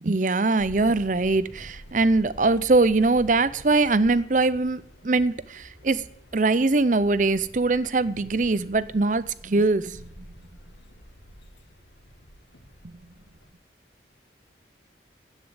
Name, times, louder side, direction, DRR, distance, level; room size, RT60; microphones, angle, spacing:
voice 1, 0.0-6.0 6.3-10.2 12.8-12.9, right 3 dB, 45° right, 0.6 m, -22 dB
sound 1, 0.6-13.5, equal, 80° left, 2.3 m, -48 dB
11.0 x 9.2 x 8.8 m
head